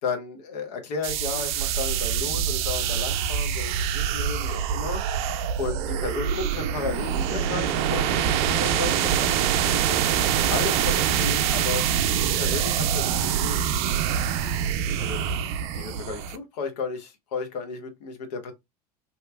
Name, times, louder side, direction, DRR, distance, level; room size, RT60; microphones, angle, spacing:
voice 1, 0.0-5.0 5.6-9.5 9.8-10.1 10.5-11.8 12.2-13.6 14.4-14.5 15.0-15.2 15.7-18.5, left 5 dB, 75° left, 1.0 m, -33 dB
sound 1, 1.0-16.4, right 9 dB, 60° right, 0.5 m, -25 dB
3.0 x 2.9 x 2.2 m
hypercardioid pair, 80°, 21 cm